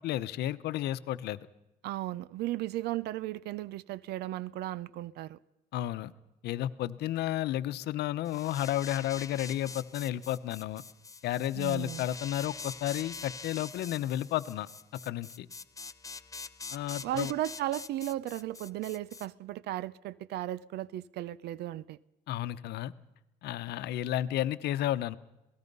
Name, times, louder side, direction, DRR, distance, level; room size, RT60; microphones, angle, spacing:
voice 1, 0.0-1.4 5.7-6.1 6.4-10.8 11.2-14.7 15.0-15.5 16.7-17.3 22.3-22.9 23.4-25.2, left 13 dB, 75° left, 0.9 m, -32 dB
voice 2, 1.8-5.4 11.5-12.1 17.0-22.0, right 14 dB, 75° right, 0.6 m, -35 dB
sound 1, 8.3-19.3, left 4 dB, 20° left, 0.8 m, -45 dB
27.5 x 18.0 x 5.5 m
cardioid pair, 110°, 17 cm